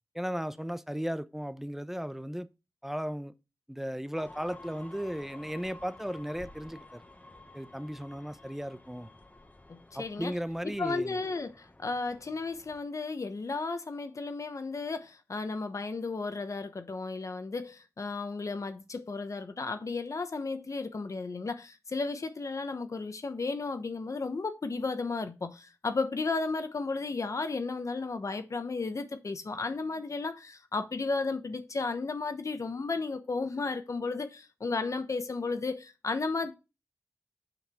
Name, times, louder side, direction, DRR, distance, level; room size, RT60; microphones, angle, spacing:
voice 1, 0.1-2.5 2.8-3.3 3.7-7.0 7.5-9.1 9.9-11.2, equal, 5° right, 0.7 m, -36 dB
sound 1, 4.2-12.8, left 2 dB, 25° left, 1.1 m, -52 dB
voice 2, 9.7-10.3 10.8-36.5, left 3 dB, 65° left, 1.1 m, -34 dB
6.9 x 5.8 x 4.5 m
cardioid pair, 45°, 6 cm